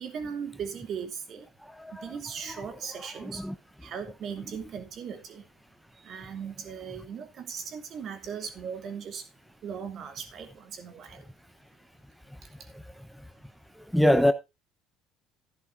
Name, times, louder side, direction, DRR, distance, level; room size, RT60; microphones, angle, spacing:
voice 1, 0.0-1.5 2.0-3.4 3.8-5.5 6.0-9.3 9.6-11.2, right 7 dB, 50° right, 2.8 m, -38 dB
voice 2, 13.9-14.3, left 1 dB, ahead, 0.9 m, -22 dB
12.5 x 10.5 x 2.6 m
hypercardioid pair, 70°, 0 cm